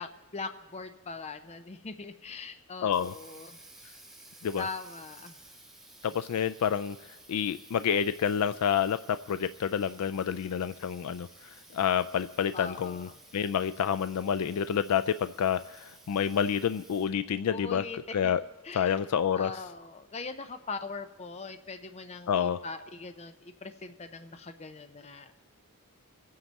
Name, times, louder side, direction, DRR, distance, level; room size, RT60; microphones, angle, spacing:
voice 1, 0.0-3.9 4.6-5.4 12.5-13.2 17.5-18.0 18.2-18.3 18.6-19.0 19.4-25.3, left 4 dB, 30° left, 9 dB, 0.5 m, -41 dB
Water tap faucet, 2.6-17.3, right 2 dB, ahead, 1.1 m, -54 dB
voice 2, 2.8-3.1 4.4-4.7 6.0-7.0 7.3-17.8 18.1-18.4 18.7-19.6 22.3-22.6, left 8 dB, 85° left, 13 dB, 0.4 m, -28 dB
24.5 x 9.5 x 4.1 m, 1.2 s
head